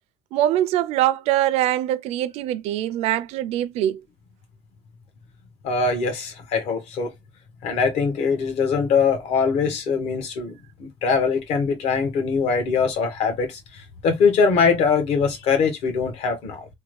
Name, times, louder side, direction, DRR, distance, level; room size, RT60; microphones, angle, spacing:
voice 1, 0.3-4.0, right 13 dB, 70° right, 0.4 m, -23 dB
voice 2, 5.6-7.1 7.6-16.7, left 5 dB, 70° left, 1.3 m, -22 dB
3.5 x 2.2 x 3.1 m
cardioid pair, 165°, 11 cm